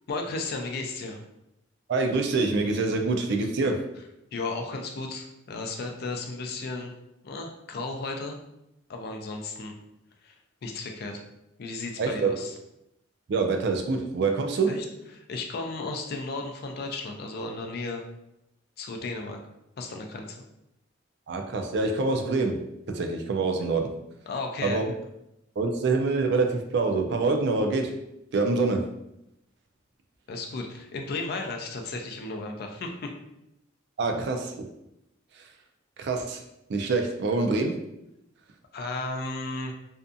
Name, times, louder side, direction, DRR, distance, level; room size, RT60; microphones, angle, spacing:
voice 1, 0.1-1.2 4.3-6.9 7.2-8.4 8.9-9.7 10.2-10.4 10.6-11.2 11.6-12.5 14.7-14.8 15.1-18.0 18.8-19.4 19.8-20.4 24.3-24.8 30.3-33.1 38.7-39.7, left 3 dB, 50° left, 3 dB, 0.4 m, -34 dB
voice 2, 1.9-3.8 12.0-12.3 13.3-14.7 21.3-22.6 22.9-23.9 24.6-24.8 25.6-27.9 28.3-28.8 34.0-34.7 36.0-36.4 36.7-37.7, right 3 dB, 60° right, 4 dB, 0.3 m, -25 dB
2.6 x 2.3 x 2.5 m, 0.85 s
head